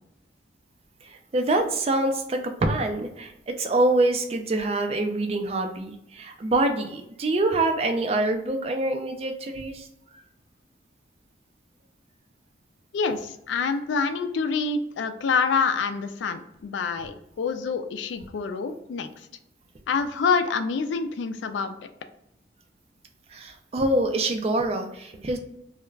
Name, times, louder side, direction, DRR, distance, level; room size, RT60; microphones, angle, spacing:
voice 1, 1.0-9.9 10.1-10.2 23.3-25.4, right 2 dB, 35° right, 5 dB, 0.3 m, -25 dB
voice 2, 12.9-19.1 19.9-21.8, left 5 dB, 85° left, 8 dB, 0.3 m, -26 dB
2.3 x 2.1 x 3.1 m, 0.81 s
head